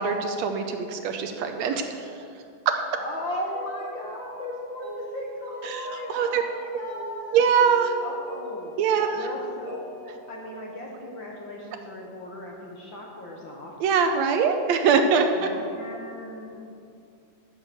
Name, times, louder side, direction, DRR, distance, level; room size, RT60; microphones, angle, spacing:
voice 1, 0.0-1.9 2.7-2.8 5.7-6.4 7.3-7.9 8.8-9.2 13.8-15.5, right 6 dB, 75° right, 6 dB, 1.8 m, -23 dB
voice 2, 2.9-7.4 8.0-8.7 9.1-13.7 15.3-16.6, left 1 dB, 55° left, -1 dB, 1.4 m, -37 dB
Mallet percussion, 3.4-11.6, right 2 dB, 40° right, 2.8 m, -43 dB
13.0 x 6.6 x 6.8 m, 2.5 s
omnidirectional pair, 3.4 m